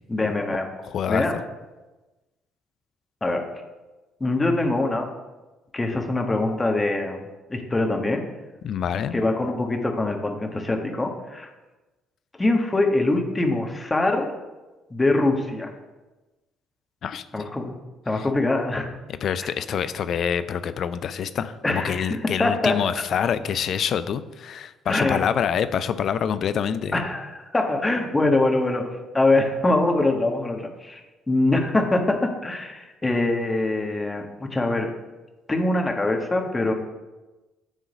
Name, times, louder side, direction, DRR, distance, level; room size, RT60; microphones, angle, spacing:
voice 1, 0.1-0.7 1.1-1.3 3.2-3.5 4.2-5.1 5.7-7.2 7.5-8.3 9.1-11.5 12.4-14.3 14.9-15.7 17.3-17.7 18.1-18.9 19.4-19.5 21.6-22.8 24.9-25.3 26.9-31.0 31.3-34.9 35.5-36.7, left 2 dB, 20° left, 3 dB, 1.4 m, -23 dB
voice 2, 0.8-1.2 8.6-9.2 17.0-17.2 19.1-27.0, left 8 dB, 55° left, 12 dB, 0.4 m, -26 dB
9.8 x 3.7 x 5.1 m, 1.1 s
hypercardioid pair, 55°, 0 cm